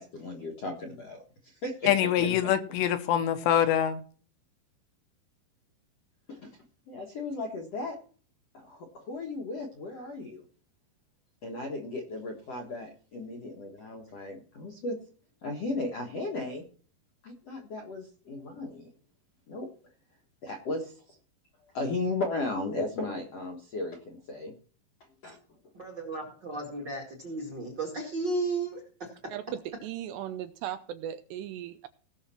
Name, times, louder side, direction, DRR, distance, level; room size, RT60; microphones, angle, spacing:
voice 1, 0.0-2.1 2.7-2.8 6.3-6.6 6.9-8.0 8.5-10.4 11.4-15.0 15.4-16.7 17.2-18.9 19.5-19.7 20.4-21.2 21.7-24.5 25.2-25.4, left 2 dB, 60° left, 1.6 m, -36 dB
voice 2, 1.9-4.0, left 10 dB, 75° left, 3.0 m, -24 dB
voice 3, 25.7-29.1, right 3 dB, 40° right, 1.8 m, -34 dB
voice 4, 29.3-31.9, right 11 dB, 80° right, 2.6 m, -37 dB
18.0 x 6.6 x 4.4 m
omnidirectional pair, 5.4 m